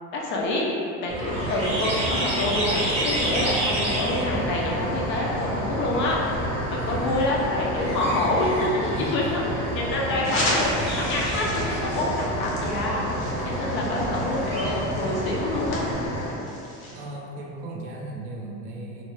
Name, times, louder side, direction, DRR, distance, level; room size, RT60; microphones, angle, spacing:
voice 1, 0.1-0.7 1.0-10.7 11.0-13.0 13.4-15.8, left 2 dB, 35° left, -3 dB, 0.4 m, -27 dB
sound 1, 1.1-15.9, right 1 dB, 20° right, 0.5 m, -31 dB
sound 2, 1.3-16.3, equal, 85° left, 1.2 m, -32 dB
voice 2, 6.7-7.2 8.9-9.3 13.8-14.5 16.9-19.0, right 2 dB, 65° right, -1 dB, 0.6 m, -37 dB
sound 3, 10.2-17.0, left 1 dB, 60° left, 0.8 m, -34 dB
2.4 x 2.1 x 3.0 m, 2.6 s
cardioid pair, 145°, 35 cm